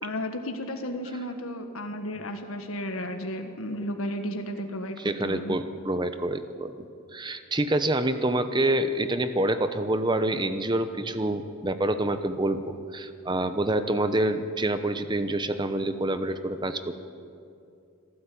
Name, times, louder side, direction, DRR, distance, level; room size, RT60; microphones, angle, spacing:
voice 1, 0.0-5.6, equal, 75° left, 5 dB, 1.6 m, -33 dB
voice 2, 5.0-6.7 7.1-16.9, right 1 dB, 20° right, 10 dB, 0.9 m, -27 dB
26.0 x 13.5 x 8.6 m, 2.6 s
head